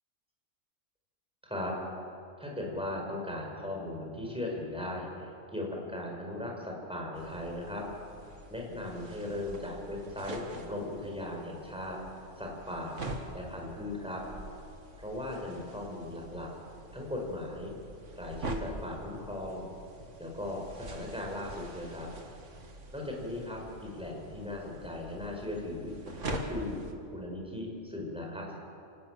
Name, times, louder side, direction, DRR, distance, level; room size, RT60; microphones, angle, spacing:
voice 1, 1.4-1.8 2.4-7.8 8.5-13.0 13.3-14.2 15.0-16.5 16.9-17.7 18.2-19.7 20.2-22.1 22.9-26.8 27.1-28.6, left 1 dB, 5° right, -1 dB, 4.8 m, -38 dB
sound 1, 7.1-26.9, right 2 dB, 80° right, 2.2 m, -45 dB
28.5 x 13.0 x 9.0 m, 2.6 s
omnidirectional pair, 1.3 m